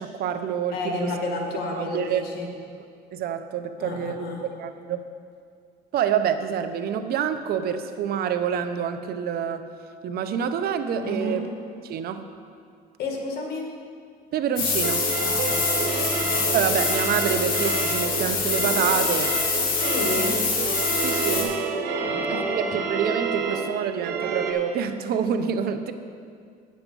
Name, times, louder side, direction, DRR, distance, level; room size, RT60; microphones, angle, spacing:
voice 1, 0.0-1.1 1.8-2.2 3.1-4.3 4.6-5.0 5.9-9.6 10.0-11.4 11.8-12.2 14.3-15.0 16.5-19.3 21.0-21.6 22.3-25.9, right 8 dB, 65° right, 9 dB, 0.7 m, -27 dB
voice 2, 0.7-2.5 3.8-4.4 11.0-11.4 13.0-13.7 15.2-16.5 19.7-20.4 21.9-22.8, left 2 dB, 75° left, 1 dB, 1.8 m, -31 dB
sound 1, 14.6-21.4, left 4 dB, 55° left, 2.1 m, -25 dB
sound 2, 14.8-24.5, right 5 dB, 85° right, 1.2 m, -29 dB
9.4 x 7.8 x 5.2 m, 2.2 s
cardioid pair, 110°, 17 cm